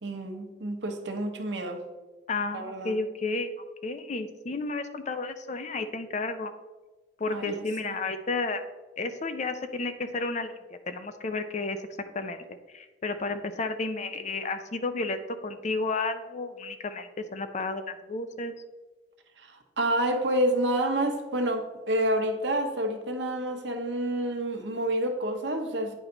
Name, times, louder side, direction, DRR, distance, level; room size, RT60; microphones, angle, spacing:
voice 1, 0.0-1.8 2.5-3.0 7.3-8.0 19.4-26.0, right 1 dB, 90° right, 5 dB, 1.0 m, -29 dB
voice 2, 2.3-3.5 3.8-6.5 7.2-8.7 9.0-10.5 10.9-11.8 12.1-18.5, left 3 dB, 40° left, 9 dB, 0.6 m, -32 dB
9.2 x 4.6 x 3.9 m, 1.2 s
head